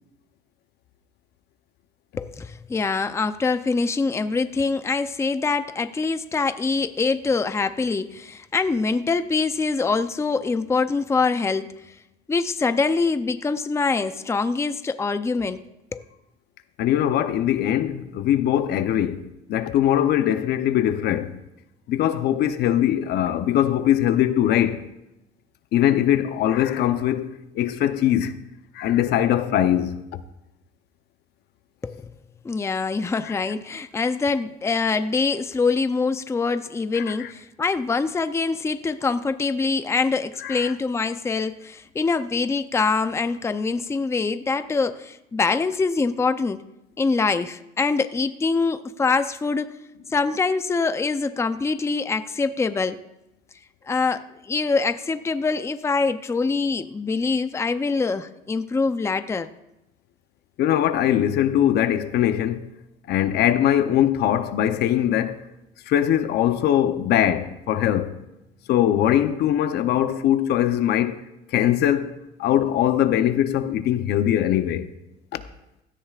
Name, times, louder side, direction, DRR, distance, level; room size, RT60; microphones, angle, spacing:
voice 1, 2.2-11.9 12.3-15.6 15.9-16.0 31.8-32.1 32.4-46.6 47.0-49.8 50.1-53.0 53.9-59.5, left 4 dB, 15° left, 0.5 m, -24 dB
voice 2, 16.8-21.3 21.9-24.8 25.7-27.3 27.5-28.4 28.7-30.0 33.2-33.3 36.9-37.3 40.4-40.7 60.6-62.7 63.1-65.4 65.9-68.1 68.7-71.2 71.5-72.1 72.4-74.9 75.3-75.4, left 11 dB, 75° left, 0.8 m, -21 dB
16.5 x 13.0 x 2.4 m
cardioid pair, 110°, 17 cm